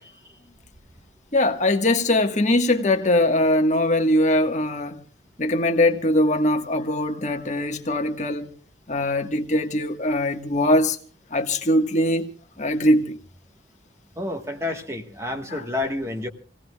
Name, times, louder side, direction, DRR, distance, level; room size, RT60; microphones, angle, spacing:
voice 1, 1.3-5.0 5.4-8.5 8.9-11.0 11.3-12.3 12.6-13.2 15.5-15.6, left 1 dB, 40° left, 1.5 m, -21 dB
voice 2, 14.2-16.3, left 2 dB, 15° right, 1.4 m, -29 dB
27.5 x 18.0 x 2.4 m
head